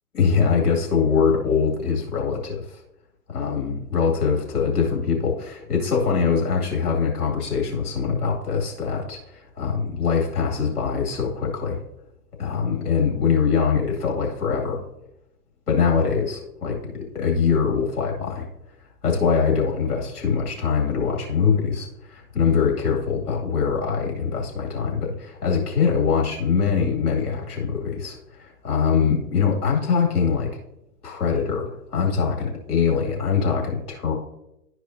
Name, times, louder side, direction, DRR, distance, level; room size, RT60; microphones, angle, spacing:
voice 1, 0.1-2.8 3.3-11.8 12.4-14.8 15.7-18.5 19.0-30.5 31.0-34.1, left 6 dB, 70° left, -1 dB, 2.3 m, -23 dB
12.0 x 4.8 x 2.6 m, 0.86 s
figure-of-eight pair, 120°, 47 cm